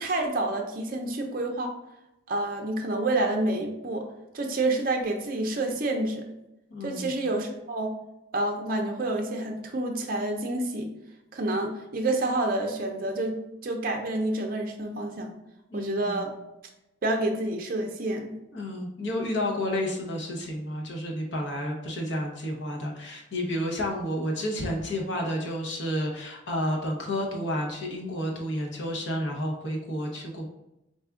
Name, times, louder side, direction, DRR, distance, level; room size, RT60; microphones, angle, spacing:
voice 1, 0.0-1.7 2.3-4.1 4.3-6.2 6.8-7.9 8.3-10.9 11.3-15.3 15.7-16.3 17.0-18.3, right 2 dB, 45° right, 3 dB, 0.5 m, -28 dB
voice 2, 6.7-7.1 15.7-16.2 18.5-30.5, equal, 65° left, -1 dB, 0.8 m, -31 dB
4.1 x 2.3 x 3.6 m, 0.88 s
head